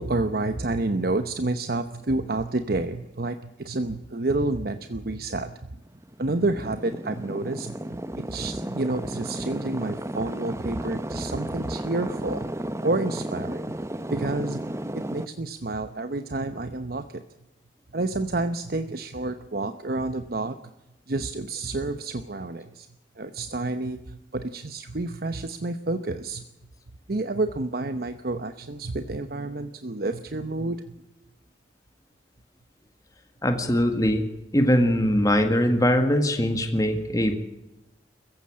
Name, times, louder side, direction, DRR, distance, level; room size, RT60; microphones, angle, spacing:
voice 1, 0.0-5.8 6.2-7.8 8.2-12.5 12.8-13.7 14.1-14.6 14.9-17.2 17.9-20.6 21.1-22.9 23.2-26.4 27.1-30.9, right 2 dB, 55° right, 9 dB, 0.9 m, -29 dB
sound 1, 5.9-15.3, right 1 dB, 15° right, 0.7 m, -33 dB
voice 2, 33.4-34.2 34.5-37.3, equal, 20° left, 5 dB, 1.7 m, -21 dB
21.5 x 15.0 x 8.7 m, 0.99 s
head